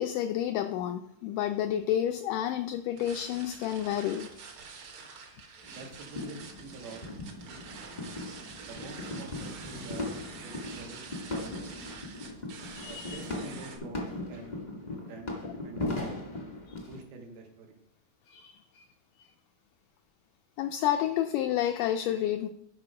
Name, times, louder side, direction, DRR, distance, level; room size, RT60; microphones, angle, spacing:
voice 1, 0.0-4.3 5.4-5.5 12.8-13.2 16.7-16.8 18.3-18.8 20.6-22.5, left 11 dB, 85° left, 8 dB, 1.8 m, -30 dB
sound 1, 3.0-13.8, right 5 dB, 70° right, 1.2 m, -47 dB
sound 2, 5.6-17.0, left 2 dB, 40° left, 0.6 m, -39 dB
voice 2, 5.6-7.1 7.5-7.6 8.6-10.1 10.4-11.5 12.8-16.3 16.9-17.8, right 3 dB, 90° right, 2 dB, 3.3 m, -47 dB
10.5 x 5.1 x 4.8 m, 0.76 s
omnidirectional pair, 4.2 m